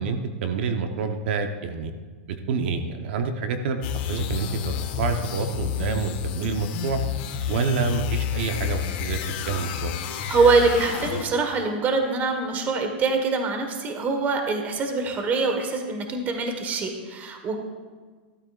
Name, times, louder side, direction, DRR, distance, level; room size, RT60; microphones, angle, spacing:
voice 1, 0.0-1.9 2.5-3.8 4.1-7.0 7.5-9.2 9.5-10.0, right 5 dB, 65° right, 6 dB, 1.0 m, -27 dB
sound 1, 3.8-11.5, left 9 dB, 55° left, 1.5 m, -30 dB
voice 2, 10.3-17.6, right 4 dB, 25° right, 4 dB, 1.5 m, -24 dB
16.0 x 13.0 x 2.5 m, 1.5 s
supercardioid pair, 140°, 6 cm